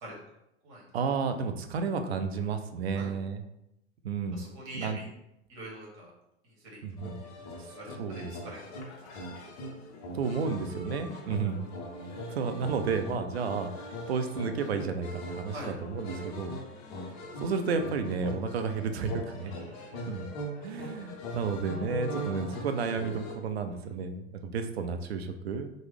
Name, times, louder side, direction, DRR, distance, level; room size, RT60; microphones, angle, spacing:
voice 1, 0.9-3.4 4.0-4.4 4.7-5.0 6.8-7.2 7.6-7.7 8.0-8.4 10.1-11.6 12.3-16.6 17.4-19.5 20.1-20.3 20.6-25.7, right 5 dB, 65° right, 7 dB, 0.5 m, -32 dB
voice 2, 4.3-5.1 5.5-6.1 6.4-7.1 7.5-8.7 15.5-15.7 19.4-20.0, right 1 dB, 40° right, -4 dB, 1.2 m, -45 dB
sound 1, 7.0-23.4, equal, 35° left, 0.6 m, -41 dB
3.0 x 2.1 x 3.2 m, 0.83 s
figure-of-eight pair, 90°, 34 cm